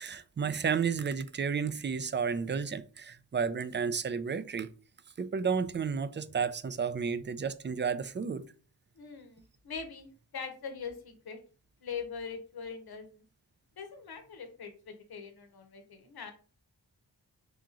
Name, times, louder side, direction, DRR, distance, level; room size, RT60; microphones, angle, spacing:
voice 1, 0.0-4.7 5.2-8.5, right 6 dB, 30° right, 0.4 m, -32 dB
voice 2, 9.0-10.1 10.3-11.4 11.8-13.1 13.8-16.3, left 6 dB, 65° left, 0.9 m, -42 dB
3.7 x 2.9 x 3.7 m
cardioid pair, 65°, 41 cm